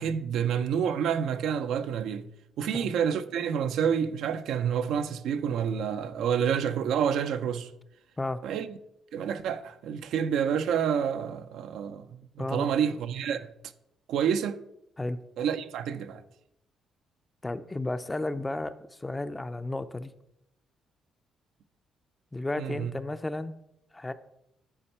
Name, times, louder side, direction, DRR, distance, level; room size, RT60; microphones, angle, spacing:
voice 1, 0.0-2.3 2.6-7.7 8.4-8.8 9.1-13.5 14.1-14.6 15.4-16.2 22.6-22.9, right 8 dB, 80° right, 0.5 m, -28 dB
voice 2, 17.4-20.1 22.3-23.5 23.9-24.1, left 2 dB, 15° left, 0.5 m, -33 dB
10.0 x 4.3 x 4.3 m
cardioid pair, 90°, 0 cm